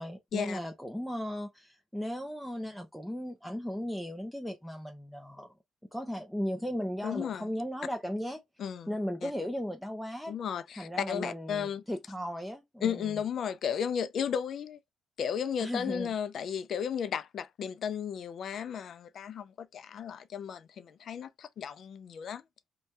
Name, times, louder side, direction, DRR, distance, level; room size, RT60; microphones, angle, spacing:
voice 1, 0.0-5.5 5.9-8.4 8.9-10.4 10.8-13.1 15.6-16.1, equal, ahead, 0.5 m, -36 dB
voice 2, 7.0-7.5 8.6-9.0 9.2-9.3 10.3-11.8 12.8-14.8 15.2-22.4, left 8 dB, 60° left, 0.4 m, -34 dB
2.7 x 2.2 x 3.2 m
cardioid pair, 90°, 0 cm